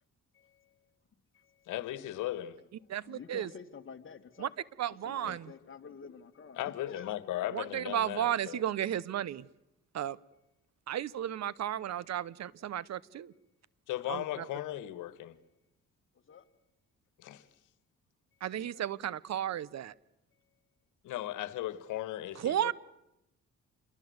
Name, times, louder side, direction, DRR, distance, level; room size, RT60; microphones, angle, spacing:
voice 1, 0.3-0.8 1.3-1.7 3.0-4.5 5.0-7.2 14.4-14.5 16.3-16.4 18.5-18.8, left 6 dB, 40° left, 2.3 m, -49 dB
voice 2, 1.7-2.6 5.2-5.3 6.6-8.6 13.9-15.4 17.2-17.4 21.0-22.7, left 13 dB, 90° left, 1.6 m, -37 dB
voice 3, 2.9-3.5 4.4-4.5 4.8-5.5 7.5-9.4 9.9-10.2 10.9-13.3 14.1-14.4 18.4-19.9 22.4-22.7, right 11 dB, 60° right, 0.9 m, -34 dB
28.0 x 22.5 x 8.0 m
cardioid pair, 90°, 30 cm